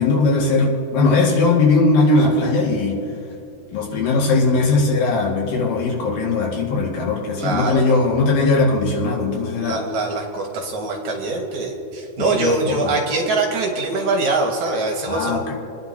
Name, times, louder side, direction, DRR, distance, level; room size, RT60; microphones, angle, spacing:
voice 1, 0.0-3.0 3.7-9.8 12.2-12.9 15.1-15.5, left 3 dB, 85° left, -3 dB, 3.7 m, -19 dB
voice 2, 7.4-8.0 9.6-15.5, right 3 dB, 65° right, 1 dB, 2.4 m, -23 dB
29.0 x 10.5 x 2.8 m, 2.6 s
omnidirectional pair, 4.0 m